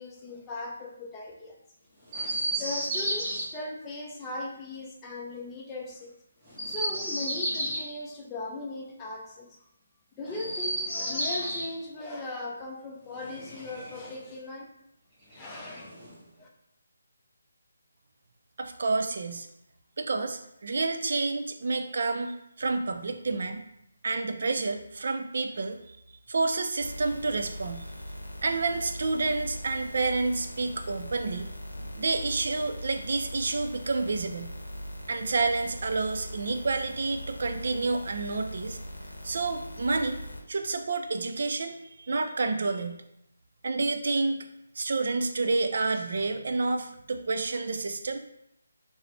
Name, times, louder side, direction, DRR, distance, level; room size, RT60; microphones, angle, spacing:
voice 1, 0.0-1.6 2.1-6.1 6.7-9.6 10.2-14.7 15.3-15.9 16.4-16.5, left 2 dB, 15° left, -2 dB, 0.5 m, -38 dB
Chirp tweet, 2.1-3.4 6.4-7.9 10.3-11.7 13.1-14.2 15.3-16.2, right 1 dB, 5° right, 1.3 m, -32 dB
voice 2, 18.6-19.5 20.0-23.6 24.0-26.0 26.3-27.9 28.4-31.5 32.0-34.5 35.1-38.8 39.2-40.2 40.5-43.0 43.6-44.4 44.8-48.2, right 3 dB, 60° right, 6 dB, 0.4 m, -29 dB
sound 1, 26.8-40.4, equal, 90° left, 0.7 m, -41 dB
4.0 x 2.0 x 2.9 m, 0.79 s
figure-of-eight pair, 155°, 0 cm